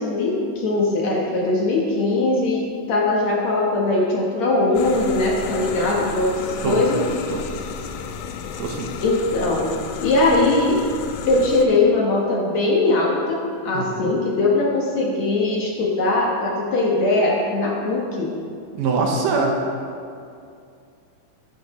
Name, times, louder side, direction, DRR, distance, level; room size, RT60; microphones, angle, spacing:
voice 1, 0.0-2.6 2.9-7.1 9.0-9.6 10.0-10.8 11.3-18.3, left 2 dB, 65° left, -3 dB, 2.0 m, -20 dB
sound 1, 4.7-11.7, left 6 dB, 80° left, 2.0 m, -33 dB
voice 2, 13.7-14.1 18.7-19.6, right 4 dB, 70° right, 0 dB, 2.3 m, -23 dB
15.0 x 10.5 x 3.1 m, 2.4 s
omnidirectional pair, 4.1 m